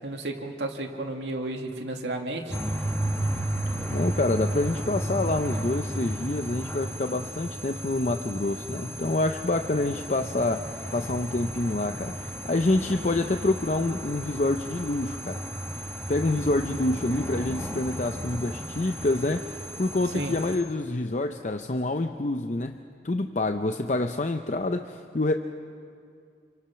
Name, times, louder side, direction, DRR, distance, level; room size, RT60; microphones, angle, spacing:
voice 1, 0.0-2.6 20.1-20.3, right 2 dB, 85° right, 2 dB, 2.2 m, -32 dB
sound 1, 2.5-20.6, right 1 dB, 10° left, 1.8 m, -33 dB
voice 2, 3.9-15.4 16.1-22.8 23.0-25.3, left 2 dB, 45° left, 6 dB, 0.7 m, -27 dB
28.5 x 24.5 x 5.9 m, 2.3 s
head